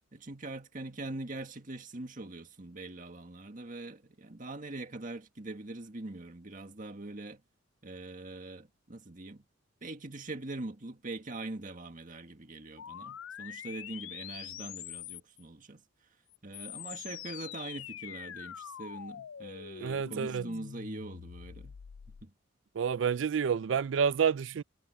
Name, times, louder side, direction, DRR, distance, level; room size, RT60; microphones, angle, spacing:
voice 1, 0.1-7.4 7.8-9.5 9.8-15.8 16.4-21.8 22.2-22.3, right 2 dB, 40° right, 1.8 m, -43 dB
sound 1, 12.8-15.4 16.3-22.3, left 10 dB, 80° left, 0.4 m, -45 dB
voice 2, 19.8-20.5 22.7-24.6, right 7 dB, 65° right, 0.4 m, -29 dB
head